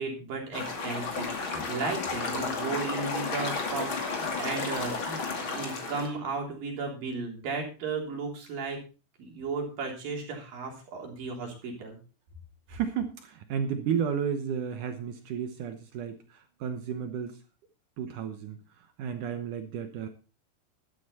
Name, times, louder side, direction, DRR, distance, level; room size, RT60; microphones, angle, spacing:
voice 1, 0.0-8.8 9.2-12.0, right 4 dB, 55° right, 1 dB, 4.9 m, -35 dB
sound 1, 0.5-6.1, left 4 dB, 35° left, 2.4 m, -32 dB
voice 2, 12.7-17.4 18.0-20.1, right 7 dB, 70° right, 8 dB, 2.0 m, -33 dB
12.5 x 11.5 x 4.2 m, 0.33 s
omnidirectional pair, 4.9 m